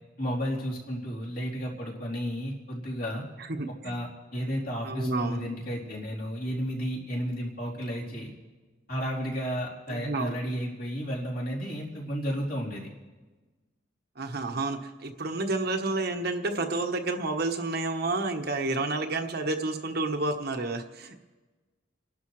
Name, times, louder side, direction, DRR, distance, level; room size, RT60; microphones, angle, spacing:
voice 1, 0.2-3.2 3.8-8.3 8.9-12.9, equal, 50° left, -5 dB, 3.6 m, -32 dB
voice 2, 3.4-3.9 4.8-5.4 9.9-10.6 14.2-21.2, right 2 dB, 55° right, 4 dB, 1.2 m, -30 dB
29.5 x 12.0 x 3.2 m, 1.3 s
head